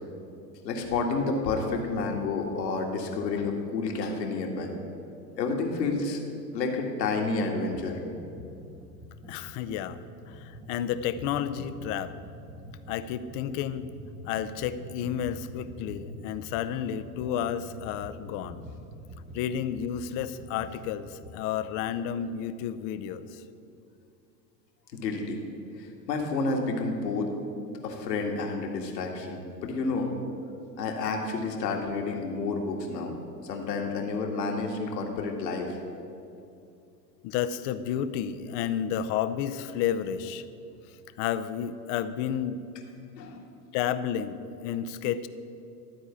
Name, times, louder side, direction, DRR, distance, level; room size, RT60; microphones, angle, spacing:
voice 1, 0.6-4.7 5.4-6.2 6.5-8.0 24.9-25.4 25.8-27.3 27.8-30.1 30.8-33.1 33.4-35.8 43.2-43.4, left 3 dB, 75° left, 2 dB, 1.9 m, -30 dB
sound 1, 7.7-7.9 8.2-21.5, right 1 dB, 10° right, 1.0 m, -46 dB
voice 2, 9.3-10.0 10.3-12.1 12.9-13.9 14.2-18.6 19.3-23.4 37.2-40.4 40.9-42.6 43.7-45.3, left 9 dB, 40° left, 12 dB, 0.6 m, -31 dB
13.0 x 4.6 x 8.3 m, 2.6 s
hypercardioid pair, 95°, 50 cm